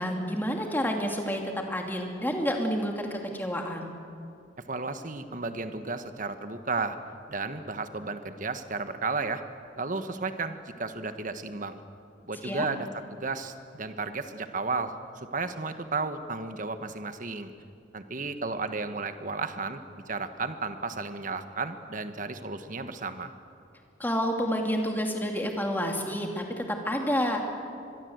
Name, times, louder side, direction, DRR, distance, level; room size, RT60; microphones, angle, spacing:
voice 1, 0.0-3.9 12.4-12.7 24.0-27.6, equal, 10° left, 2 dB, 2.6 m, -29 dB
voice 2, 4.7-7.0 7.3-9.4 9.8-11.8 12.3-14.9 15.3-17.5 17.9-23.3, right 3 dB, 45° right, 9 dB, 1.3 m, -33 dB
25.5 x 22.0 x 8.0 m, 2.4 s
head